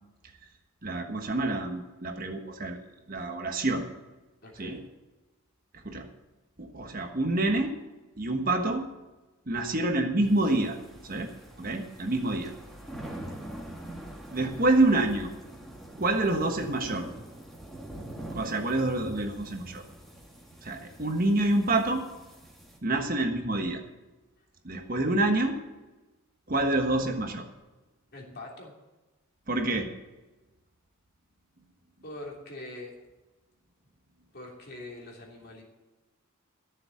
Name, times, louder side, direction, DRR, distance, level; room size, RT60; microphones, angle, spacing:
voice 1, 0.8-2.8 3.1-3.9 4.6-4.8 5.8-6.1 6.6-7.7 8.2-8.9 9.5-10.8 11.0-11.3 11.6-12.5 14.3-15.3 16.0-17.1 18.3-19.8 20.6-22.1 22.8-23.8 24.6-25.6 26.5-27.4 29.5-29.9, right 2 dB, 40° right, 4 dB, 1.3 m, -27 dB
voice 2, 4.4-4.8 13.3-13.5 28.1-28.7 32.0-32.9 34.3-35.6, left 2 dB, 45° left, -1 dB, 3.1 m, -43 dB
sound 1, 10.2-22.8, right 1 dB, ahead, 2.4 m, -44 dB
14.0 x 7.1 x 8.5 m, 1.1 s
head